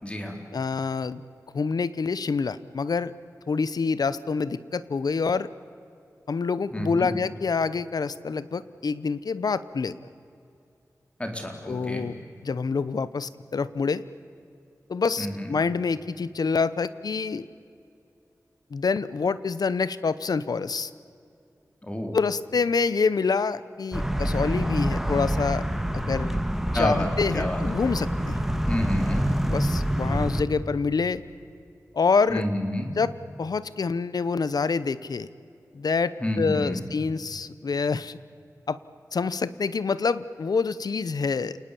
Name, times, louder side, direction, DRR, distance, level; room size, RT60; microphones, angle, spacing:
voice 1, 0.0-0.4 6.7-7.2 11.2-12.1 15.2-15.5 21.8-22.2 26.7-27.1 27.3-27.6 28.6-29.3 32.3-32.9 36.2-36.9, left 1 dB, 20° left, 4 dB, 4.1 m, -29 dB
voice 2, 0.5-1.2 1.5-3.1 3.5-5.5 6.3-10.0 11.7-12.1 12.4-14.0 14.9-17.5 18.7-20.9 22.1-25.7 25.9-26.4 26.7-28.4 29.5-31.2 31.9-32.4 33.0-33.1 33.4-35.3 35.7-38.2 38.7-38.8 39.1-41.6, left 5 dB, 85° left, 16 dB, 0.9 m, -26 dB
sound 1, 23.9-30.4, equal, 5° right, 1.9 m, -26 dB
29.0 x 19.5 x 8.6 m, 2.5 s
wide cardioid pair, 90°, 7 cm